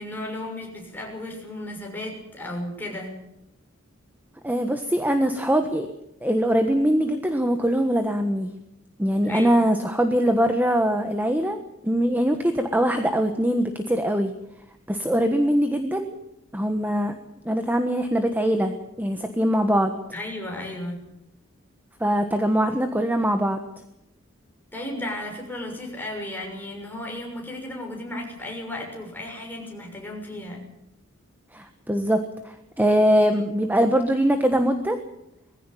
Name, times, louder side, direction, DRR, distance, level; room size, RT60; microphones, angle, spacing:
voice 1, 0.0-3.2 9.2-9.6 20.1-21.1 24.7-30.6, left 1 dB, 10° left, 0 dB, 6.4 m, -34 dB
voice 2, 4.4-5.9 6.2-8.5 9.0-11.6 11.8-14.3 14.9-16.1 16.5-17.1 17.4-19.9 22.0-23.6 31.5-35.0, equal, 10° right, 6 dB, 1.3 m, -22 dB
21.5 x 15.5 x 9.2 m, 0.85 s
head